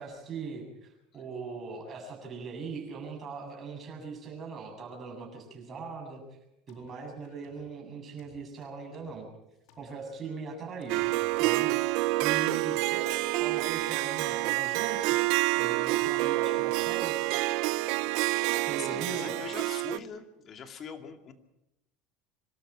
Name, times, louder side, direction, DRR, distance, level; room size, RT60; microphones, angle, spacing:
voice 1, 0.0-6.2 6.7-9.3 9.8-11.1 11.4-11.7 12.2-15.2 15.5-17.3 18.6-19.3, right 4 dB, 30° right, 1 dB, 7.6 m, -40 dB
sound 1, 6.7-7.7 8.2-9.3 9.7-11.4, left 5 dB, 75° left, 4.0 m, -59 dB
Harp, 10.9-20.0, right 20 dB, 65° right, 0.8 m, -28 dB
voice 2, 18.5-21.3, left 6 dB, 35° left, 6 dB, 2.4 m, -42 dB
26.0 x 13.0 x 8.9 m, 0.90 s
supercardioid pair, 145°, 0 cm